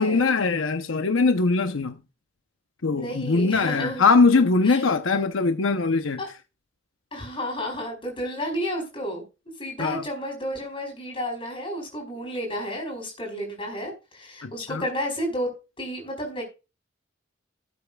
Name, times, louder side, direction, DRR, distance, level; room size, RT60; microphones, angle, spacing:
voice 1, 0.0-2.0 2.8-6.2 9.8-10.0 14.4-14.8, left 4 dB, 75° left, 0.8 m, -21 dB
voice 2, 3.0-4.0 4.7-4.8 6.2-6.3 7.1-9.2 9.6-15.5 15.8-16.4, equal, 25° left, 4.9 m, -31 dB
17.5 x 8.3 x 2.3 m
head